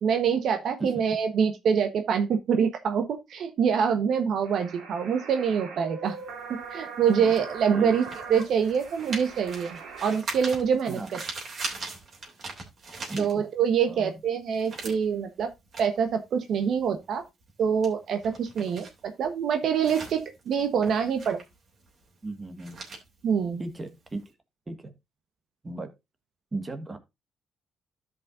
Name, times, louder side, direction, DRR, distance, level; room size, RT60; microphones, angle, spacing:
voice 1, 0.0-6.2 6.5-11.2 13.2-15.5 15.8-17.2 17.6-21.4 23.2-23.6, right 7 dB, 70° right, 1.1 m, -25 dB
sound 1, 4.4-10.2, right 5 dB, 85° right, 2.4 m, -41 dB
sound 2, 6.1-13.8 14.2-24.2, right 3 dB, 50° right, 3.1 m, -41 dB
voice 2, 13.1-13.4 13.9-14.1 22.2-22.8 23.6-24.2 24.7-24.9 25.6-25.9 26.5-27.0, right 2 dB, 25° right, 1.6 m, -35 dB
13.0 x 5.4 x 2.6 m
cardioid pair, 90°, 0 cm